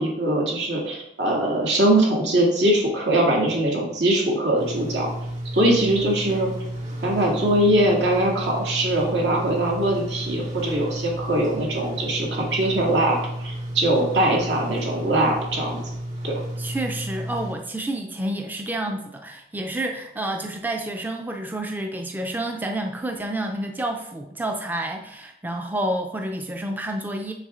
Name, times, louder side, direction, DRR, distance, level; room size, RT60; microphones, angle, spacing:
voice 1, 0.0-5.1 5.5-6.5 7.0-15.8 16.2-16.3, right 1 dB, 80° right, -2 dB, 2.2 m, -22 dB
sound 1, 4.6-17.5, right 1 dB, 40° right, 1.9 m, -32 dB
voice 2, 5.6-6.0 16.6-27.3, right 1 dB, 10° right, 3 dB, 0.4 m, -29 dB
7.2 x 6.2 x 3.7 m, 0.82 s
head